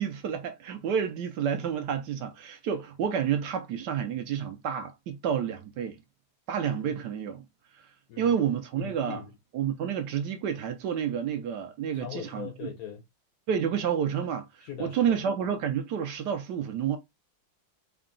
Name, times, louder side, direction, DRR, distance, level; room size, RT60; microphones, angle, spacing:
voice 1, 0.0-6.0 6.5-7.5 7.7-7.9 8.2-9.2 9.5-12.7 13.5-17.0, right 8 dB, 70° right, 1.1 m, -30 dB
voice 2, 8.8-9.3 11.9-13.0 14.6-15.0, left 9 dB, 70° left, 0.8 m, -40 dB
3.8 x 2.3 x 3.7 m
omnidirectional pair, 2.1 m